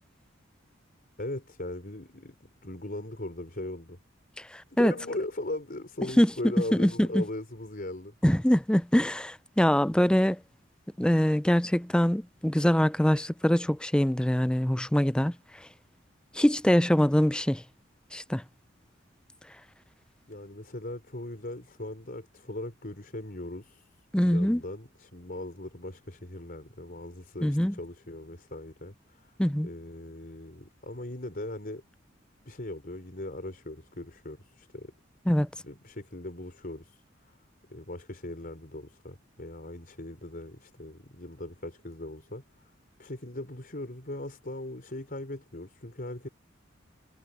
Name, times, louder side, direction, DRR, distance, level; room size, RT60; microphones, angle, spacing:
voice 1, 1.2-4.0 4.7-8.1 20.3-23.9 24.2-29.3 29.6-31.8 32.4-34.9 35.6-37.0 37.7-42.7 43.0-46.3, left 1 dB, 50° left, 4.9 m, -39 dB
voice 2, 4.5-4.9 6.2-6.3 6.8-7.2 8.2-10.4 11.0-15.3 16.3-17.6 18.1-18.4 24.1-24.6 27.4-27.7 29.4-29.7 35.3-35.5, equal, 5° left, 0.5 m, -23 dB
head